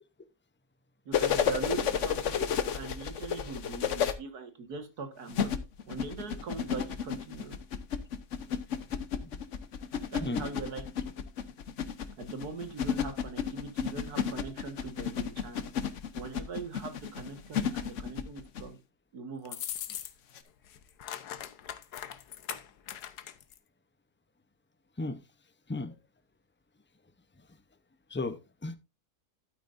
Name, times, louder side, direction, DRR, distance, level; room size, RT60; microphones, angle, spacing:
sound 1, 1.1-4.1 5.3-18.7 20.4-20.5, left 7 dB, 55° left, 1.1 m, -32 dB
voice 1, 1.1-2.4 2.7-5.5 5.9-7.6 10.1-10.9 12.2-15.6 16.1-18.8 19.1-19.6, right 4 dB, 80° right, 2.2 m, -41 dB
sound 2, 19.5-20.4 20.7-23.6, left 10 dB, 90° left, 1.4 m, -40 dB
voice 2, 28.1-28.8, left 2 dB, 20° left, 0.3 m, -35 dB
12.0 x 9.0 x 2.6 m
omnidirectional pair, 1.6 m